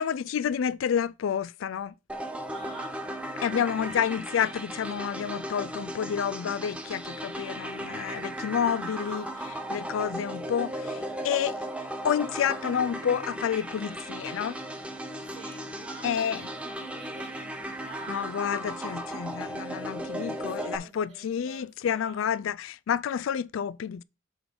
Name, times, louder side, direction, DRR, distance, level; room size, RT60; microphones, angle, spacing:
voice 1, 0.0-1.9 3.4-11.6 12.0-14.6 16.0-16.5 18.1-24.0, left 8 dB, 85° left, 0.3 m, -29 dB
sound 1, 2.1-20.8, right 1 dB, 5° right, 0.8 m, -36 dB
voice 2, 2.4-3.0 3.5-4.2 8.7-9.5 15.2-18.3 20.1-22.3, right 2 dB, 30° right, 2.4 m, -47 dB
7.9 x 3.8 x 5.1 m
head